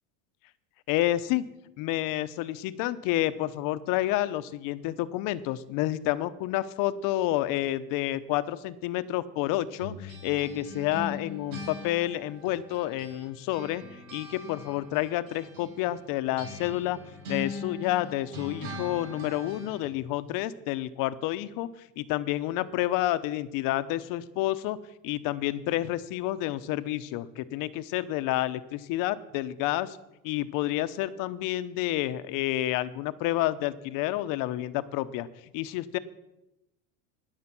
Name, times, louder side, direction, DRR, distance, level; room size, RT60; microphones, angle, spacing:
voice 1, 0.9-1.4 1.8-13.8 14.1-17.0 17.3-21.7 22.0-24.8 25.0-30.0 30.2-35.3 35.5-36.0, left 15 dB, 55° left, 14 dB, 0.9 m, -29 dB
sound 1, 9.8-13.3 13.5-19.9, left 2 dB, 80° right, 4.4 m, -41 dB
19.5 x 6.7 x 6.0 m, 0.92 s
supercardioid pair, 130°, 40 cm